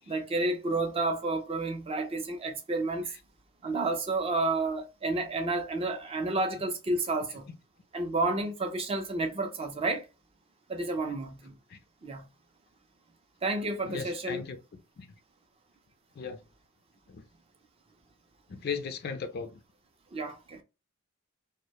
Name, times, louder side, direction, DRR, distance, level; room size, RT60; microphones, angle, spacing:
voice 1, 0.1-3.1 3.6-7.5 7.9-10.1 10.7-11.5 12.0-12.3 13.4-14.4 20.1-20.6, right 2 dB, 25° right, 0.4 m, -30 dB
voice 2, 13.8-14.6 15.0-15.1 16.2-16.4 17.1-17.2 18.5-19.6, left 5 dB, 45° left, 0.3 m, -36 dB
2.1 x 2.1 x 2.8 m
head